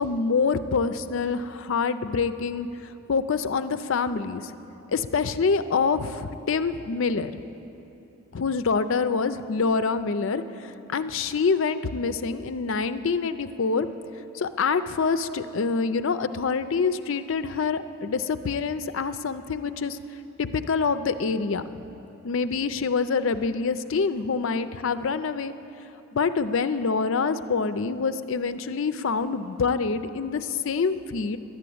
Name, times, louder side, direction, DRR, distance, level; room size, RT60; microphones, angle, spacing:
voice 1, 0.0-4.4 4.9-7.4 8.3-13.9 14.3-20.0 20.4-21.8 22.2-25.5 26.1-31.4, left 5 dB, 65° left, 11 dB, 0.5 m, -26 dB
11.5 x 9.0 x 8.5 m, 2.9 s
head